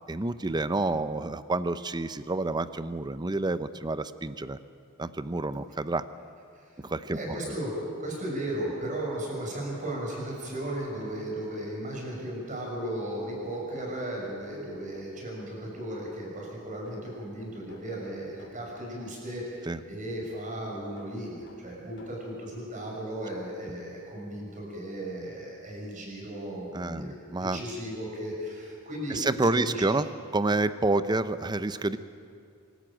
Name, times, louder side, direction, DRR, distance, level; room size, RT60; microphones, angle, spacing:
voice 1, 0.1-4.6 5.0-6.1 6.8-7.2 7.4-7.5 19.7-19.8 26.7-27.6 29.1-32.0, right 2 dB, 20° right, 13 dB, 0.6 m, -29 dB
voice 2, 7.1-27.1 27.4-29.2 29.5-29.8, right 1 dB, 35° right, -2 dB, 6.4 m, -36 dB
sound 1, 10.1-11.8 13.3-15.4 16.9-19.1 20.5-22.3 23.2-23.3 24.6-24.7 25.0-25.1, equal, 55° left, 3.6 m, -54 dB
25.5 x 13.5 x 8.9 m, 2.4 s
head